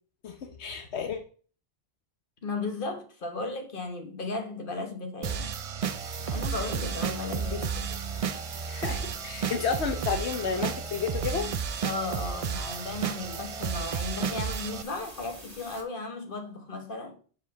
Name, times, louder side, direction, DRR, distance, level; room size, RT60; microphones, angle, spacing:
voice 1, 0.2-1.2 7.5-7.7 8.7-11.5, left 6 dB, 80° left, 1.1 m, -31 dB
voice 2, 2.4-5.5 6.3-7.9 11.8-17.2, left 3 dB, 55° left, 1.5 m, -35 dB
sound 1, 5.2-14.8, right 6 dB, 50° right, 0.4 m, -32 dB
sound 2, 5.8-15.8, right 1 dB, 15° right, 1.9 m, -47 dB
7.3 x 4.3 x 6.7 m
omnidirectional pair, 1.1 m